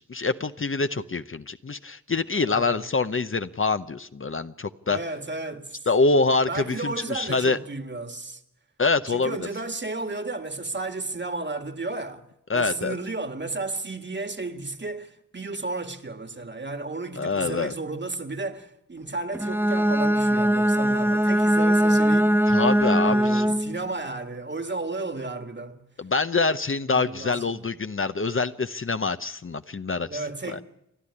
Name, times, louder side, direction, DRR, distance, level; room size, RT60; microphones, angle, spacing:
voice 1, 0.0-5.0 5.9-7.6 8.8-9.5 12.5-13.0 17.2-17.7 22.5-23.6 26.0-30.6, left 3 dB, 45° left, 0.8 m, -25 dB
voice 2, 2.5-2.9 4.9-5.9 6.4-8.4 9.1-12.3 12.5-22.4 23.0-25.8 26.9-27.6 30.1-30.6, right 3 dB, 40° right, 1.8 m, -33 dB
Bowed string instrument, 19.3-23.8, equal, 10° right, 1.1 m, -21 dB
30.0 x 12.0 x 9.8 m
wide cardioid pair, 75°, 29 cm